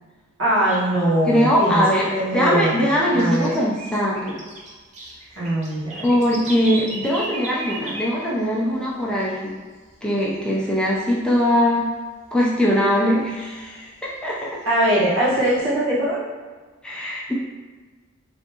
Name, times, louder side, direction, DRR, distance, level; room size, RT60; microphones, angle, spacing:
voice 1, 0.4-1.8 2.1-2.8 3.1-3.5 5.4-6.1 14.6-16.2, right 1 dB, 75° right, -8 dB, 1.3 m, -21 dB
sound 1, 0.9-2.3 2.7-8.8 9.1-9.2 9.5-10.0 10.3-11.5 11.8-11.9 12.2-12.3 12.8-13.9 14.4-15.7, right 2 dB, 35° right, 0.6 m, -36 dB
voice 2, 1.3-4.4 6.0-9.5 10.0-11.9 12.3-14.6 16.8-17.3, equal, 5° left, -5 dB, 0.4 m, -21 dB
3.4 x 2.6 x 2.8 m, 1.4 s
head